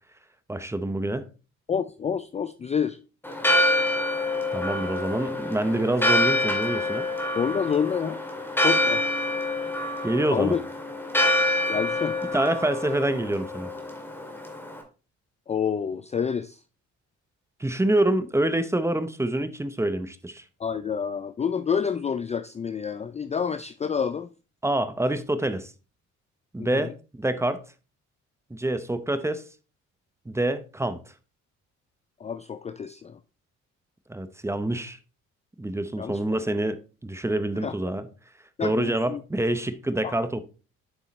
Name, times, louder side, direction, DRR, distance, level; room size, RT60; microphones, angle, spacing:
voice 1, 0.5-1.2 4.5-7.1 10.0-10.6 12.3-13.7 17.6-20.4 24.6-25.7 26.5-27.6 28.5-29.4 30.3-31.0 34.1-35.0 35.6-38.1 38.6-40.4, right 1 dB, 10° right, 0.7 m, -26 dB
voice 2, 1.7-3.0 7.3-8.2 8.6-9.0 10.3-10.6 11.7-12.2 15.5-16.6 20.6-24.3 26.6-26.9 32.2-33.2 36.0-36.2 37.6-37.8 38.6-39.2 40.0-40.1, left 7 dB, 25° left, 0.4 m, -28 dB
Church bell, 3.2-14.8, left 1 dB, 5° left, 2.0 m, -26 dB
8.0 x 5.5 x 3.1 m
cardioid pair, 90°, 30 cm